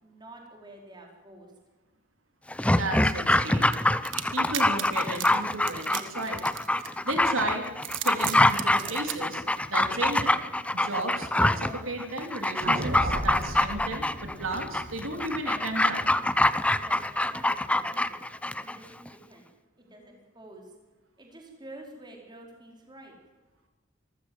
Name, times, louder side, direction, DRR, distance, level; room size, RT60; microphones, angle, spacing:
voice 1, 0.0-1.5 16.7-18.2 18.6-19.5 19.8-20.7 21.2-23.1, right 1 dB, 20° right, 1 dB, 4.6 m, -48 dB
Dog, 2.5-18.8 19.1-19.2, left 1 dB, 5° left, 0.6 m, -25 dB
voice 2, 2.6-3.7 4.3-6.4 6.8-7.7 8.0-10.4 10.7-16.0, right 2 dB, 85° right, 4 dB, 3.2 m, -34 dB
sound 1, 3.7-7.2 7.7-9.2, right 12 dB, 70° right, 1.6 m, -36 dB
sound 2, 12.6-16.9, right 1 dB, 50° right, 2.2 m, -35 dB
25.5 x 15.0 x 7.9 m, 1.2 s
head